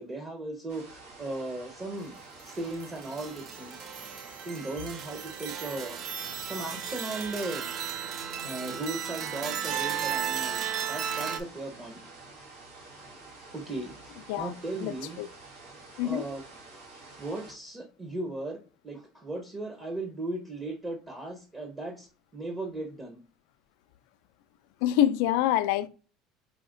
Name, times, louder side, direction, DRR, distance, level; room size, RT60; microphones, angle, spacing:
voice 1, 0.0-2.1 2.4-3.9 4.4-7.7 8.4-12.0 13.5-15.2 15.7-16.4 17.2-18.6 18.8-22.1 22.3-23.2, right 2 dB, 25° right, 0.8 m, -37 dB
sound 1, 0.7-17.5, right 3 dB, 90° right, 1.8 m, -49 dB
sound 2, 2.5-11.4, right 8 dB, 50° right, 0.5 m, -35 dB
voice 2, 14.8-15.3 16.0-16.2 24.8-25.9, left 12 dB, 80° left, 0.3 m, -26 dB
4.8 x 2.8 x 2.5 m
supercardioid pair, 105°, 0 cm